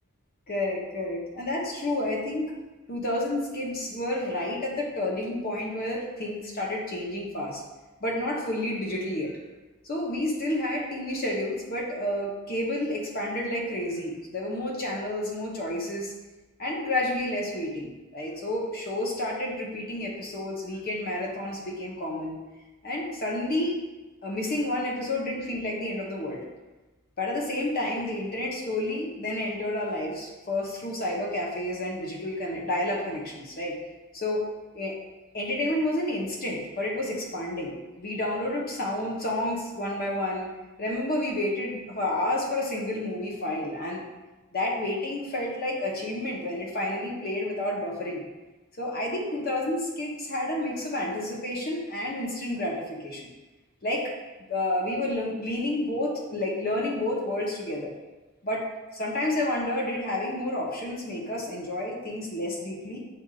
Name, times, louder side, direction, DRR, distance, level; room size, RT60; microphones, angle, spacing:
voice 1, 0.5-2.5 2.9-7.6 8.0-9.4 9.8-16.1 16.6-22.4 22.8-23.8 24.2-26.4 27.2-33.7 34.1-34.5 34.7-34.9 35.3-40.5 40.8-44.0 44.5-48.2 48.8-53.3 53.8-54.1 54.5-57.9 58.4-58.7 58.9-63.0, left 1 dB, 45° left, -2 dB, 0.9 m, -30 dB
7.4 x 2.6 x 2.4 m, 1.1 s
head